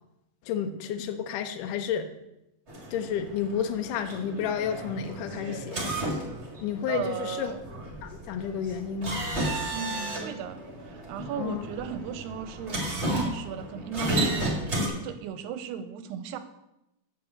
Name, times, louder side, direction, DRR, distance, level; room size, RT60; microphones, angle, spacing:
voice 1, 0.4-2.1 2.9-5.8 6.6-7.5 8.0-9.2 11.4-11.7, left 8 dB, 85° left, 7 dB, 1.8 m, -31 dB
sound 1, 2.7-14.9, right 1 dB, 30° right, 1.3 m, -33 dB
voice 2, 6.9-7.6 9.7-14.6 14.9-16.4, right 7 dB, 85° right, 10 dB, 2.6 m, -36 dB
9.1 x 5.5 x 7.0 m, 0.87 s
omnidirectional pair, 4.8 m